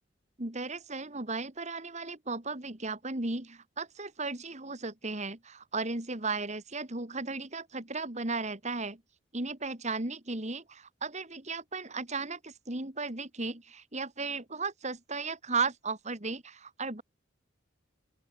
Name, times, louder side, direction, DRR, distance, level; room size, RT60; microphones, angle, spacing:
voice 1, 0.4-9.0 9.3-17.0, right 3 dB, 35° right, 2.7 m, -35 dB
open air
head